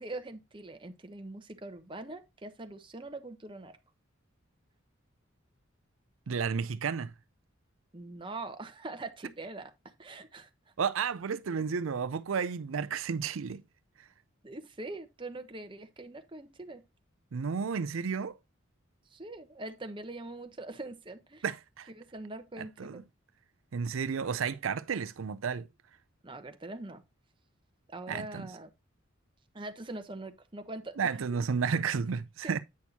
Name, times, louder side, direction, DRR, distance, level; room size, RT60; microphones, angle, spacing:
voice 1, 0.0-3.8 7.9-9.7 10.0-10.5 14.4-16.8 19.1-21.4 22.0-23.0 26.2-27.0 27.9-28.7 29.5-31.0, right 2 dB, 25° right, 1.0 m, -43 dB
voice 2, 6.3-7.1 10.8-13.6 17.3-18.4 21.4-21.9 22.6-23.0 23.7-25.7 28.1-28.5 31.0-32.6, right 6 dB, 80° right, 0.5 m, -32 dB
8.5 x 6.2 x 2.8 m
head